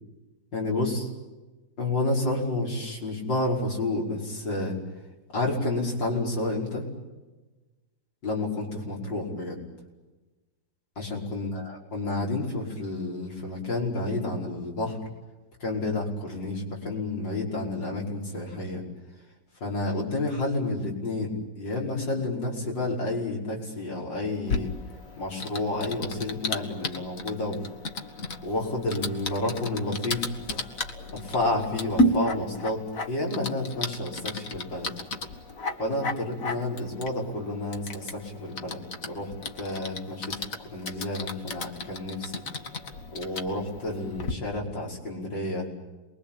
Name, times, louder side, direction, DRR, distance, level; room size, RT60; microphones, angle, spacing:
voice 1, 0.5-1.1 1.8-4.8 5.3-6.8 8.2-9.6 11.0-15.0 15.6-18.8 19.6-24.7 25.2-27.7 28.4-30.3 31.1-32.8 33.1-34.9 35.8-42.4 43.1-45.7, left 2 dB, 85° left, -1 dB, 6.2 m, -30 dB
Typing, 24.5-44.3, left 1 dB, 50° left, 2.2 m, -33 dB
28.5 x 22.0 x 8.7 m, 1.2 s
omnidirectional pair, 1.9 m